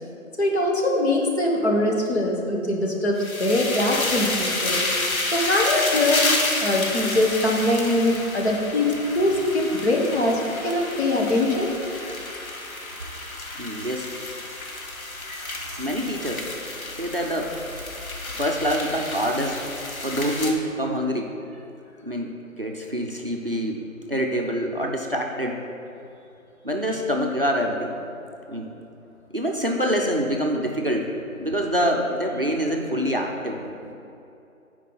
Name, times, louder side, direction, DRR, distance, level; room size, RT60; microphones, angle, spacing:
voice 1, 0.4-4.9 5.3-6.3 6.6-11.7, left 1 dB, 50° left, -1 dB, 1.3 m, -22 dB
sound 1, 3.2-20.5, left 2 dB, 85° left, 1.2 m, -30 dB
voice 2, 13.6-14.1 15.8-16.4 16.9-17.5 18.3-19.7 20.0-21.4 22.0-25.6 26.6-28.0 28.5-28.7 29.3-31.1 31.4-33.6, equal, 45° right, 1 dB, 0.5 m, -26 dB
9.3 x 4.7 x 4.0 m, 2.8 s
figure-of-eight pair, 175°, 41 cm